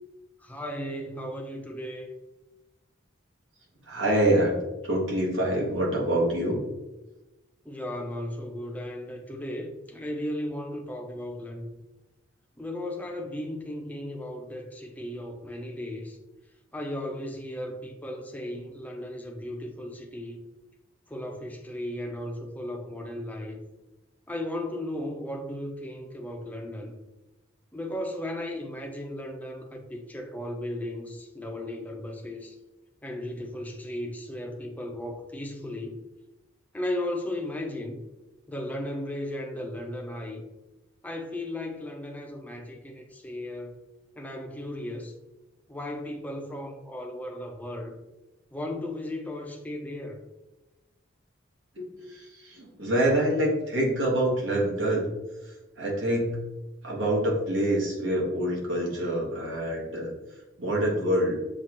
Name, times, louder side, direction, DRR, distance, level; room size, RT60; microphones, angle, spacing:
voice 1, 0.4-2.1 7.6-11.7 12.6-16.2 16.7-20.4 21.1-23.6 24.3-26.9 27.7-32.5 33.0-36.0 36.7-38.0 38.5-40.4 41.0-43.8 44.2-45.1 45.7-48.0 48.5-50.2, left 1 dB, 10° left, 0.5 m, -35 dB
voice 2, 3.9-4.6 4.8-6.6 51.8-55.1 55.8-56.4 56.8-60.1 60.6-61.4, right 1 dB, 70° right, 1.4 m, -26 dB
7.3 x 2.4 x 2.9 m
head